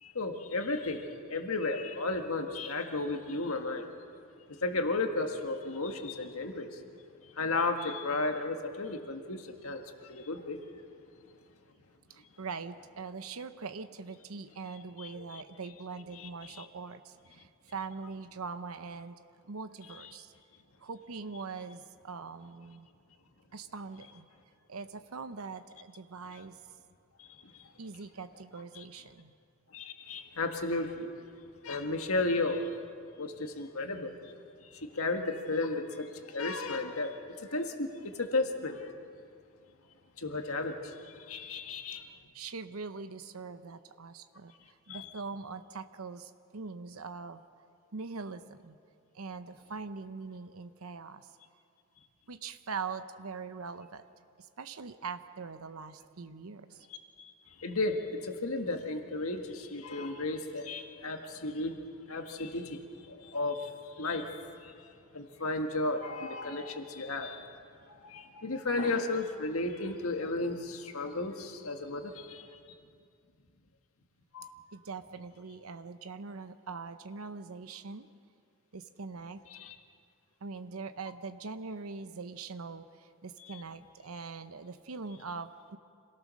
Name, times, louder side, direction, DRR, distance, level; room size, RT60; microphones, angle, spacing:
voice 1, 0.0-3.9 4.5-6.8 7.3-10.6 15.0-15.4 16.2-16.7 27.2-27.7 28.7-28.8 29.7-31.1 31.6-32.8 33.2-34.3 34.6-39.1 40.2-42.1 44.9-45.1 57.2-57.3 57.6-61.8 62.1-64.9 65.1-67.4 68.1-72.5 74.3-74.5 79.5-79.8 83.5-83.6, left 2 dB, 80° left, 5 dB, 1.8 m, -34 dB
voice 2, 12.1-19.2 19.5-20.3 20.8-22.9 23.5-24.3 24.7-26.6 27.8-29.3 42.3-47.4 47.9-48.8 49.1-51.4 52.3-54.0 54.4-56.9 74.7-78.1 78.7-79.4 80.4-85.8, right 4 dB, 90° right, 10 dB, 0.8 m, -42 dB
sound 1, 66.0-66.8 67.2-67.3 67.8-68.8, left 2 dB, 50° left, 1.9 m, -50 dB
26.5 x 17.5 x 6.4 m, 2.3 s
head